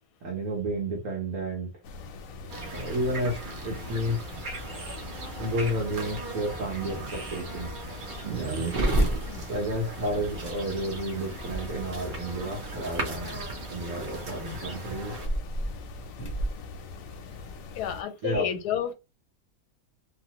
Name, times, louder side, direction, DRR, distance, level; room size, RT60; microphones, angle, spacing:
voice 1, 0.2-1.7 2.7-4.2 5.4-7.7 8.3-8.6 9.5-13.4 13.7-15.2 18.2-18.5, right 1 dB, 60° right, 1.2 m, -31 dB
sound 1, 1.8-18.0, left 4 dB, 70° left, 0.9 m, -43 dB
sound 2, 2.5-15.3, right 3 dB, 45° right, 0.7 m, -37 dB
sound 3, 11.3-17.8, equal, 35° left, 0.4 m, -36 dB
voice 2, 17.7-18.9, left 8 dB, 85° left, 1.1 m, -30 dB
3.0 x 2.1 x 2.9 m
omnidirectional pair, 1.7 m